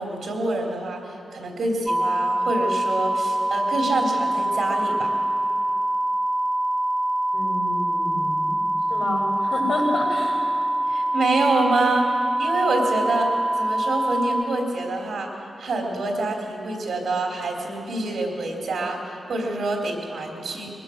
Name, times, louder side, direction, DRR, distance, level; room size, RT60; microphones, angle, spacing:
voice 1, 0.0-5.1 10.9-15.3 15.6-20.7, right 2 dB, 80° right, 0 dB, 3.1 m, -26 dB
sound 1, 1.9-14.4, right 1 dB, 5° right, 0.4 m, -24 dB
voice 2, 7.3-8.6 8.9-10.4, left 1 dB, 80° left, -10 dB, 5.6 m, -29 dB
22.0 x 21.0 x 6.4 m, 2.7 s
wide cardioid pair, 150°, 0 cm